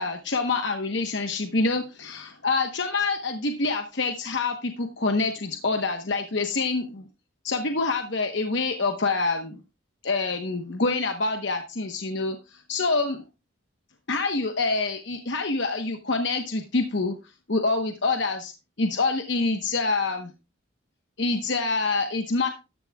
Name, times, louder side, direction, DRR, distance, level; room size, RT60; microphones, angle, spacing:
voice 1, 0.0-7.1 7.4-9.6 10.0-13.2 14.1-17.1 17.5-18.5 18.8-20.3 21.2-22.5, left 3 dB, 60° left, 5 dB, 1.0 m, -26 dB
13.5 x 10.5 x 2.3 m, 0.29 s
head